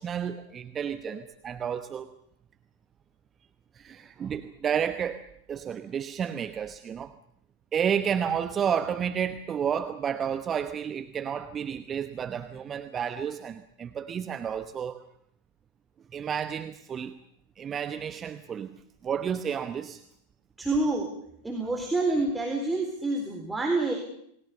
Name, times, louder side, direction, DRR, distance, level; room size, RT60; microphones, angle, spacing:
voice 1, 0.0-2.1 3.7-7.1 7.7-15.1 16.1-17.2 17.6-18.8 19.0-20.0, right 8 dB, 25° right, 11 dB, 1.0 m, -31 dB
voice 2, 20.6-21.1 21.4-23.9, right 2 dB, 5° right, 1 dB, 4.0 m, -27 dB
28.0 x 20.0 x 6.8 m, 0.71 s
figure-of-eight pair, 90°, 0 cm